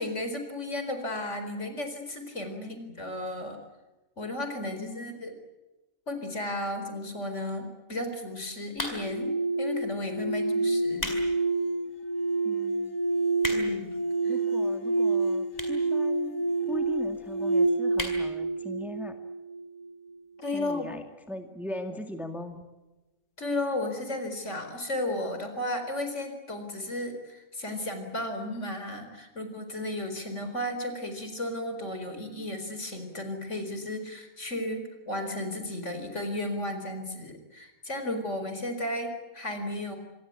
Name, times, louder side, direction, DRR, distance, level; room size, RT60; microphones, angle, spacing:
voice 1, 0.0-3.6 4.2-5.4 6.1-11.2 13.5-14.0 14.2-14.3 20.4-20.9 23.4-40.0, left 1 dB, 60° left, 7 dB, 4.7 m, -34 dB
voice 2, 2.4-2.9 4.7-5.2 10.3-10.8 12.4-12.9 14.3-16.4 16.7-19.2 20.5-22.6 38.0-38.4, equal, ahead, 5 dB, 2.1 m, -40 dB
sound 1, 8.7-9.3 10.0-10.2 10.7-11.3 11.7-11.8 12.4-12.5 12.7-12.8 13.0-13.9 14.7-14.8 15.5-15.9 16.2-16.3 16.5-16.6 16.8-16.9 17.2-17.4 17.9-18.2 18.6-18.7 18.9-19.0, equal, 30° left, 4.9 m, -34 dB
sound 2, 8.9-19.9, right 2 dB, 75° left, 1.8 m, -28 dB
26.5 x 21.5 x 8.5 m, 1.1 s
omnidirectional pair, 1.4 m